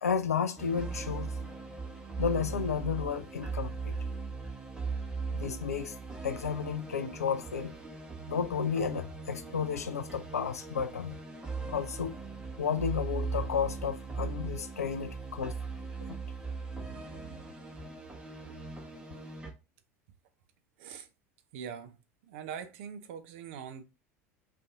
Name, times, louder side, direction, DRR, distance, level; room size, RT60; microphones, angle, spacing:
voice 1, 0.0-1.3 2.2-3.9 5.3-5.9 6.2-7.7 8.3-11.2 11.7-12.1 12.6-15.6 16.1-16.2, left 7 dB, 80° left, 0.3 m, -32 dB
sound 1, 0.6-19.5, right 4 dB, 10° right, 0.8 m, -39 dB
voice 2, 21.5-22.0 22.2-23.8, right 7 dB, 55° right, 0.5 m, -42 dB
2.6 x 2.5 x 3.5 m
figure-of-eight pair, 75°, 8 cm